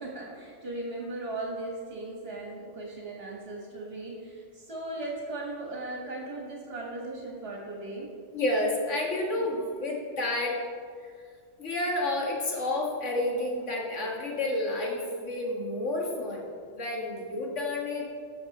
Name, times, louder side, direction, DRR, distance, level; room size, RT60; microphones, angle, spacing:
voice 1, 0.0-8.1 9.3-9.5, right 2 dB, 55° right, -2 dB, 1.6 m, -37 dB
voice 2, 8.3-10.6 11.0-11.1 11.6-16.5 16.7-18.0, left 2 dB, 80° left, -2 dB, 2.0 m, -30 dB
13.5 x 5.9 x 4.1 m, 2.1 s
omnidirectional pair, 1.2 m